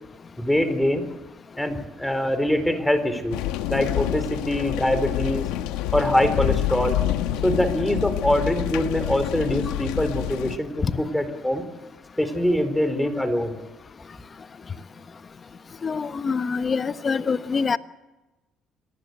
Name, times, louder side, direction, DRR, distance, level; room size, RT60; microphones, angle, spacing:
voice 1, 0.4-1.1 1.6-3.4 3.7-5.5 5.9-7.0 7.4-10.7 11.0-11.7 12.2-13.6, left 1 dB, 5° left, 10 dB, 4.3 m, -23 dB
sound 1, 3.3-10.6, left 13 dB, 85° left, 1.3 m, -27 dB
voice 2, 15.8-17.8, left 5 dB, 35° left, 11 dB, 1.3 m, -25 dB
26.5 x 18.5 x 8.2 m, 1.1 s
supercardioid pair, 75°, 0 cm